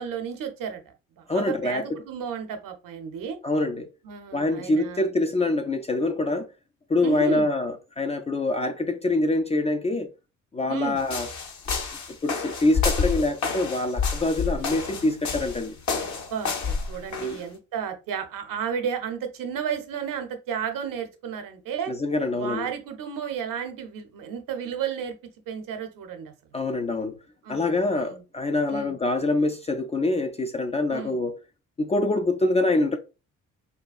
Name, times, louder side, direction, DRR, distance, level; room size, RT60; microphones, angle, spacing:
voice 1, 0.0-3.4 4.0-5.1 7.0-7.5 10.7-11.0 16.3-21.9 22.3-25.1 25.5-26.3 27.4-28.2 28.7-29.0 30.9-31.2, right 7 dB, 60° right, 0.7 m, -33 dB
voice 2, 1.3-2.0 3.4-3.9 4.3-6.5 6.9-10.1 10.5-11.3 12.1-15.8 17.1-17.4 21.9-22.7 26.5-27.2 27.5-31.4 31.8-33.0, left 2 dB, 20° left, 0.3 m, -25 dB
sound 1, 11.0-17.4, left 5 dB, 50° left, 0.8 m, -29 dB
3.9 x 2.2 x 2.3 m
hypercardioid pair, 45°, 37 cm